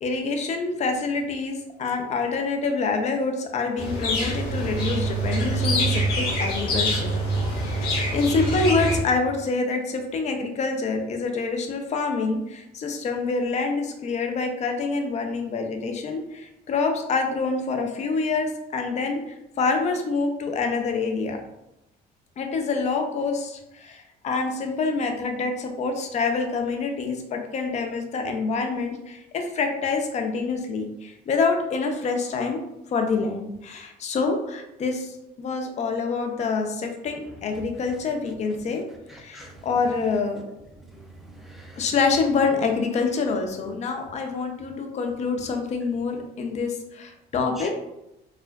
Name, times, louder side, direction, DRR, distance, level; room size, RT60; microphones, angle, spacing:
voice 1, 0.0-7.1 7.7-21.4 22.4-32.6 32.9-38.8 39.1-40.4 41.7-47.7, left 4 dB, 45° left, 4 dB, 0.5 m, -26 dB
sound 1, 3.8-9.0, right 1 dB, 70° left, 1.2 m, -25 dB
voice 2, 39.1-39.6 40.8-41.8 47.6-47.7, right 1 dB, ahead, 0 dB, 0.6 m, -44 dB
4.2 x 2.4 x 2.3 m, 0.88 s
cardioid pair, 110°, 17 cm